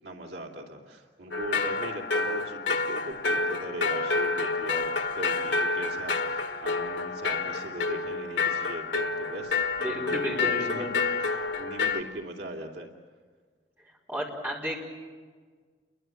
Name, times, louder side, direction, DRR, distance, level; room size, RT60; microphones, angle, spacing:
voice 1, 0.0-10.9 11.2-12.9, right 1 dB, 75° right, 1 dB, 2.9 m, -40 dB
sound 1, 1.3-12.0, left 4 dB, 85° left, 1.5 m, -29 dB
voice 2, 9.8-11.0 14.1-14.8, equal, 10° right, -2 dB, 5.0 m, -32 dB
29.5 x 23.0 x 7.7 m, 1.5 s
head